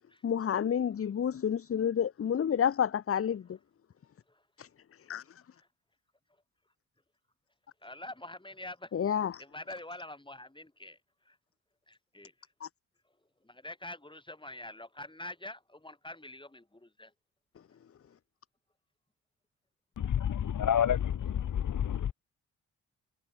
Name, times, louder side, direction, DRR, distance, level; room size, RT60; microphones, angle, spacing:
voice 1, 0.2-3.4 4.6-4.7 5.1-5.2 8.9-9.3 12.6-12.7, left 8 dB, 35° left, 0.9 m, -29 dB
voice 2, 7.8-9.0 9.4-11.4 11.9-12.5 13.0-13.1 13.4-17.1, left 1 dB, 10° left, 7.6 m, -46 dB
voice 3, 20.0-22.1, left 9 dB, 50° left, 1.7 m, -29 dB
hypercardioid pair, 45°, 38 cm